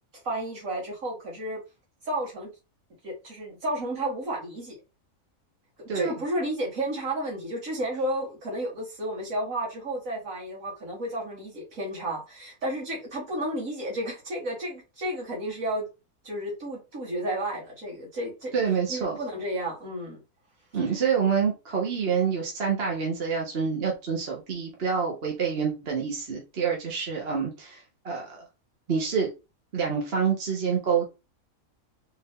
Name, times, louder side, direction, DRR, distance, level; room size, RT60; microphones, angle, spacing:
voice 1, 0.2-1.6 2.0-2.5 3.0-4.8 5.9-15.9 16.2-18.5 18.9-20.2, right 1 dB, 65° right, 2.4 m, -32 dB
voice 2, 18.5-19.2 20.7-28.4 28.9-29.3 29.7-31.1, right 6 dB, 45° right, 1.3 m, -27 dB
4.4 x 2.7 x 3.7 m
omnidirectional pair, 1.5 m